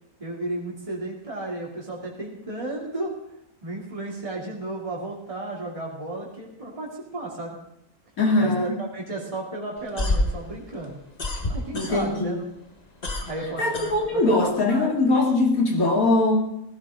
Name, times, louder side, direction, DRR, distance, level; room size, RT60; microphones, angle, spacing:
voice 1, 0.2-3.1 3.6-7.6 8.4-11.0 11.5-12.3 13.3-14.9, right 2 dB, 20° right, -3 dB, 3.1 m, -33 dB
voice 2, 8.2-8.8 11.7-12.4 13.6-16.4, left 2 dB, 70° left, 0 dB, 3.2 m, -21 dB
sound 1, 9.8-12.3 12.6-14.5, left 1 dB, 30° left, 1.4 m, -28 dB
17.0 x 16.0 x 3.8 m, 0.81 s
omnidirectional pair, 1.5 m